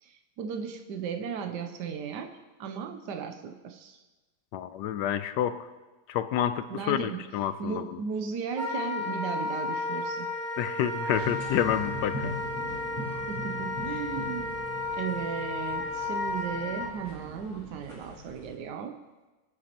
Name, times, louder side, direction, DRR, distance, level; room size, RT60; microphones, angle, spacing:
voice 1, 0.0-4.0 6.7-7.2 7.6-10.3 13.3-14.6 14.9-19.0, right 6 dB, 85° right, 6 dB, 1.4 m, -36 dB
voice 2, 4.5-5.7 6.1-8.0 10.6-12.3, left 10 dB, 85° left, 12 dB, 1.2 m, -29 dB
Wind instrument woodwind instrument, 8.5-16.9, left 2 dB, 10° left, 1.2 m, -33 dB
sound 1, 11.1-18.5, equal, 15° right, 4.0 m, -40 dB
23.5 x 8.2 x 3.0 m, 1.2 s
omnidirectional pair, 1.8 m